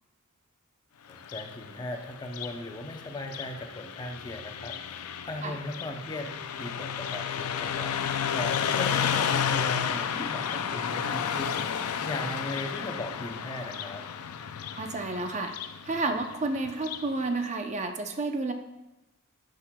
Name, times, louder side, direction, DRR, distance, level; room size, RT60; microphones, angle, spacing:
Car passing by, 1.1-17.1, left 8 dB, 85° left, 0.5 m, -32 dB
voice 1, 1.1-14.1, left 1 dB, 20° left, 4 dB, 0.6 m, -38 dB
voice 2, 14.8-15.5 15.9-18.5, right 3 dB, 35° right, 6 dB, 0.6 m, -30 dB
11.5 x 6.3 x 2.2 m, 0.97 s
head